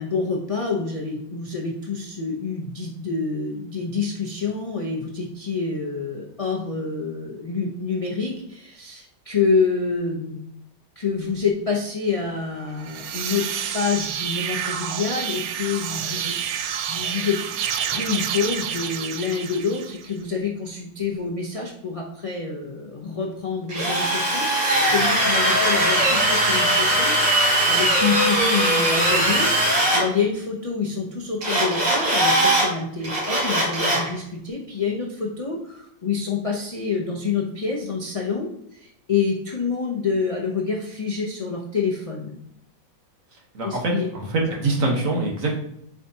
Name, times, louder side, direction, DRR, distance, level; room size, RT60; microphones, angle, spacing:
voice 1, 0.0-10.4 11.0-17.4 17.8-24.5 24.8-42.3 43.6-44.1, left 5 dB, 35° left, -2 dB, 0.5 m, -27 dB
sound 1, 12.7-20.1, right 9 dB, 70° right, 1.0 m, -29 dB
Drill, 23.7-30.0 31.4-32.7 33.0-34.1, right 1 dB, 90° right, 3.2 m, -20 dB
voice 2, 43.5-45.5, right 2 dB, 50° right, 0 dB, 1.5 m, -24 dB
7.9 x 4.9 x 2.8 m, 0.74 s
omnidirectional pair, 1.9 m